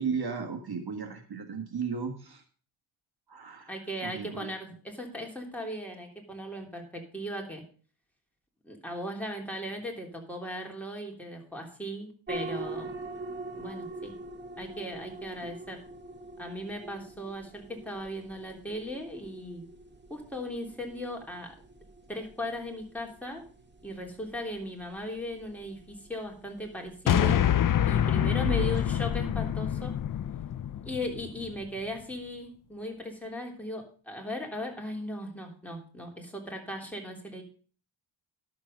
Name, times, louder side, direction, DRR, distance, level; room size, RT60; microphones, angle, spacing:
voice 1, 0.0-2.4 3.3-4.5 15.4-15.5 28.2-28.8, right 5 dB, 50° right, 5 dB, 1.5 m, -35 dB
voice 2, 3.7-7.6 8.6-12.9 13.3-14.1 14.6-15.8 16.4-19.6 20.1-21.5 22.1-23.4 23.8-27.4 27.9-29.9 30.8-37.4, left 1 dB, 5° left, 0 dB, 3.2 m, -37 dB
sound 1, 12.3-27.1, right 2 dB, 20° right, 1.8 m, -44 dB
sound 2, 27.1-31.5, left 10 dB, 45° left, 0.5 m, -26 dB
11.5 x 7.4 x 5.2 m, 0.39 s
cardioid pair, 95°, 49 cm